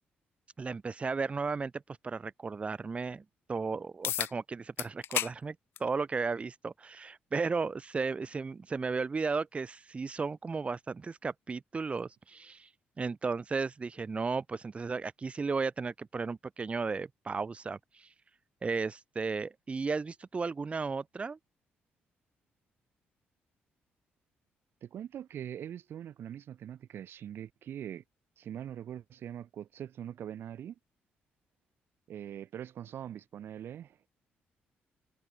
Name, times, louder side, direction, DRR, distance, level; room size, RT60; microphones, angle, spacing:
voice 1, 0.6-3.2 3.5-12.7 13.0-18.1 18.6-21.4, right 4 dB, 30° right, 0.9 m, -34 dB
sound 1, 4.0-4.3 4.8-5.3 5.7-5.9 7.0-7.1 12.0-12.1, left 11 dB, 70° left, 0.4 m, -32 dB
voice 2, 24.8-28.0 28.4-30.7 32.1-34.1, right 10 dB, 65° right, 4.2 m, -42 dB
cardioid pair, 85°, 4 cm